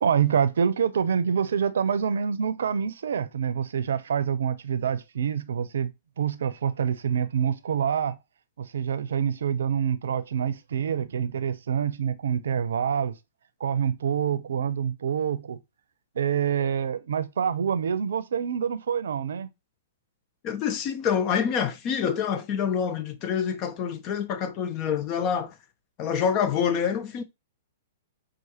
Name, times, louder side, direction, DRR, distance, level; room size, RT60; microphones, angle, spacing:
voice 1, 0.0-5.9 6.2-8.2 8.6-13.1 13.6-15.6 16.1-19.5, right 7 dB, 70° right, 0.6 m, -26 dB
voice 2, 20.4-25.5 26.0-27.2, left 7 dB, 35° left, 0.5 m, -26 dB
6.0 x 2.5 x 2.9 m
hypercardioid pair, 115°, 0 cm